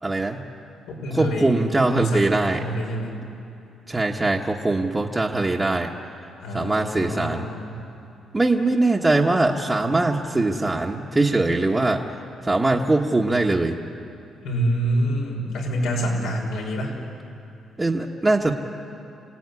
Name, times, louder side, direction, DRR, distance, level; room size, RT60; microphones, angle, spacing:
voice 1, 0.0-0.4 1.1-2.7 3.2-3.3 3.9-5.9 6.5-7.5 8.3-12.0 12.4-13.8 17.8-18.5, right 2 dB, 15° right, -2 dB, 1.3 m, -22 dB
voice 2, 0.9-1.6 1.9-2.2 2.5-3.2 6.4-7.8 14.4-16.9, equal, 90° left, 0 dB, 5.8 m, -26 dB
28.0 x 17.0 x 9.8 m, 2.6 s
cardioid pair, 140°, 0 cm